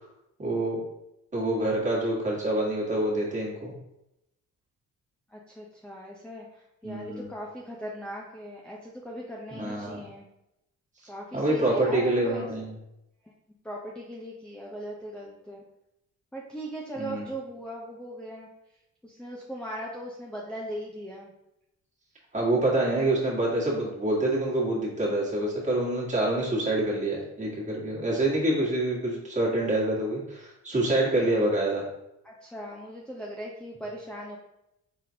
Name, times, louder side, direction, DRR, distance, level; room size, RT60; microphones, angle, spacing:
voice 1, 0.4-0.8 1.3-3.7 6.8-7.3 9.5-10.0 11.3-12.8 17.0-17.3 22.3-31.8, right 1 dB, 25° right, -4 dB, 1.6 m, -26 dB
voice 2, 5.3-10.2 11.1-12.5 13.6-15.6 16.3-18.5 19.0-21.3 31.1-31.5 32.2-34.4, equal, 5° left, -3 dB, 0.6 m, -39 dB
4.2 x 3.7 x 2.7 m, 0.86 s
cardioid pair, 90°, 30 cm